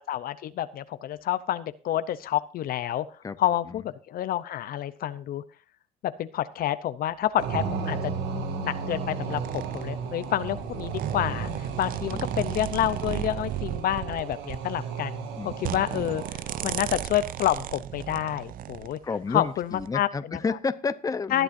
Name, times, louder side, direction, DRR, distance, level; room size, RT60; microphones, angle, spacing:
voice 1, 0.0-3.1 3.4-5.4 6.0-19.0 19.3-20.4 21.3-21.4, left 12 dB, 60° left, 14 dB, 0.7 m, -29 dB
sound 1, 7.4-17.3, right 5 dB, 90° right, 2.3 m, -34 dB
sound 2, 9.3-19.0 19.6-19.9, right 12 dB, 55° right, 0.5 m, -35 dB
voice 2, 15.4-15.7 18.8-21.4, left 4 dB, 20° left, 13 dB, 0.8 m, -31 dB
19.5 x 10.0 x 2.6 m, 0.36 s
cardioid pair, 110°, 17 cm